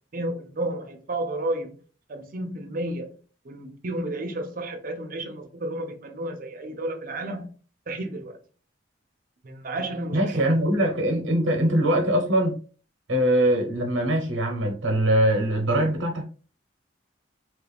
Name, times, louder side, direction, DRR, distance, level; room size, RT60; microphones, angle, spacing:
voice 1, 0.1-1.8 2.1-3.1 3.4-7.5 7.9-8.4 9.4-10.6, right 1 dB, 45° right, 0.6 m, -32 dB
voice 2, 10.1-12.6 13.1-16.2, right 1 dB, 85° right, 0.9 m, -22 dB
3.1 x 2.4 x 3.4 m
head